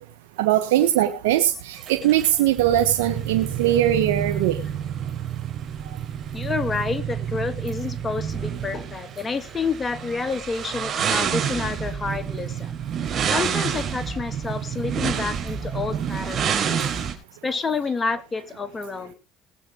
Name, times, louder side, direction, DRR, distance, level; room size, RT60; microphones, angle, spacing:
voice 1, 0.4-4.6, right 12 dB, 85° right, 1.2 m, -20 dB
sound 1, 1.8-17.1, right 8 dB, 45° right, 3.9 m, -29 dB
voice 2, 6.3-12.8 13.2-16.9 17.4-19.1, left 4 dB, 25° left, 2.2 m, -29 dB
19.5 x 8.2 x 3.8 m
supercardioid pair, 80°, 0 cm